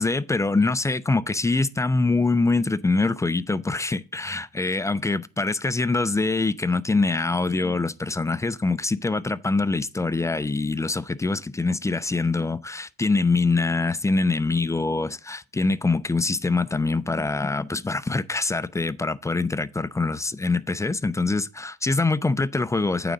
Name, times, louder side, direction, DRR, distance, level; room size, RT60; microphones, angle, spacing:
voice 1, 0.0-23.1, left 3 dB, 10° left, 0.3 m, -24 dB
9.0 x 3.8 x 6.0 m
cardioid pair, 90°, 30 cm